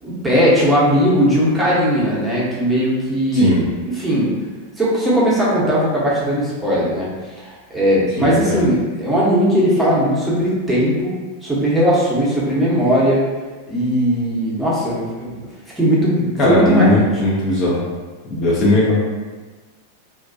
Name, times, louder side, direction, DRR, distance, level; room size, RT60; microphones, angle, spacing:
voice 1, 0.0-3.6 3.8-4.3 4.8-7.1 7.4-11.1 11.4-13.3 13.7-15.4 15.8-17.1, equal, 5° right, -7 dB, 0.8 m, -18 dB
voice 2, 3.3-3.6 8.2-8.7 16.4-17.8 18.3-19.0, left 2 dB, 30° left, -6 dB, 0.5 m, -17 dB
2.4 x 2.2 x 2.5 m, 1.3 s
figure-of-eight pair, 90°, 0 cm